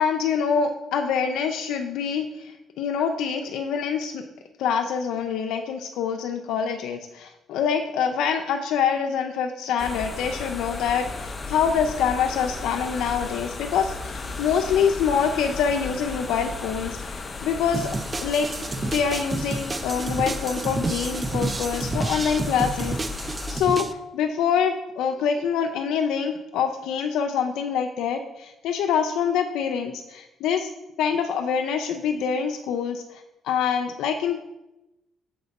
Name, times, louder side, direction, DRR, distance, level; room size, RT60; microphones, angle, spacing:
voice 1, 0.0-4.2 4.6-17.9 18.2-18.5 18.9-23.9 24.1-30.7 31.0-34.4, left 7 dB, 85° left, 4 dB, 0.4 m, -25 dB
sound 1, 9.8-23.6, left 3 dB, 30° left, 0.6 m, -35 dB
sound 2, 17.7-23.9, right 3 dB, 25° right, 0.4 m, -30 dB
6.8 x 4.2 x 4.0 m, 0.95 s
cardioid pair, 100°, 0 cm